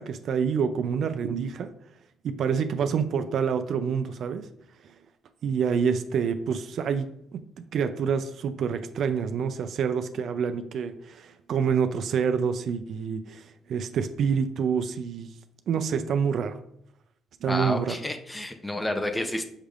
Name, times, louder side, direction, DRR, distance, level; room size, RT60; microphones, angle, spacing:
voice 1, 0.0-1.7 2.2-4.5 5.4-7.4 7.7-13.4 13.7-15.3 15.7-16.6 17.4-18.0, right 6 dB, 60° right, 9 dB, 0.3 m, -27 dB
voice 2, 17.5-19.4, left 1 dB, 10° left, 6 dB, 0.5 m, -30 dB
6.4 x 3.3 x 2.4 m, 0.74 s
cardioid pair, 115°, 0 cm